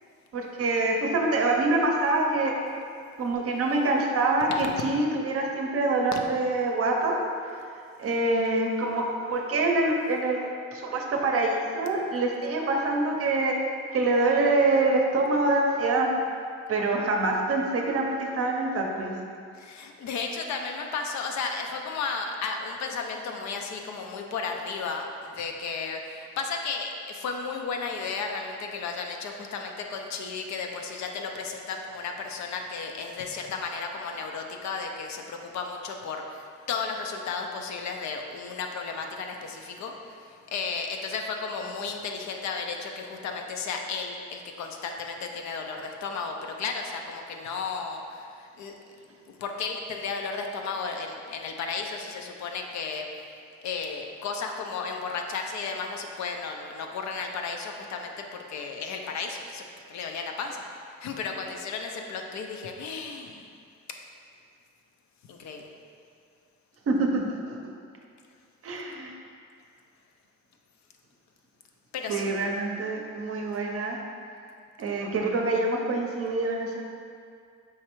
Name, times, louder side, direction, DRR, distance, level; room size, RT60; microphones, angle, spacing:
voice 1, 0.3-2.5 3.2-7.2 7.5-7.6 8.0-9.0 9.3-13.5 13.9-16.1 16.7-19.1 66.9-67.6 68.6-69.1 72.1-74.0 74.8-76.8, right 2 dB, 50° right, 1 dB, 0.6 m, -25 dB
voice 2, 19.5-48.7 49.3-53.1 53.6-60.6 61.0-63.5 65.3-65.7 71.9-72.3, left 4 dB, 65° left, 3 dB, 0.5 m, -34 dB
4.8 x 3.2 x 3.0 m, 2.3 s
cardioid pair, 90°, 30 cm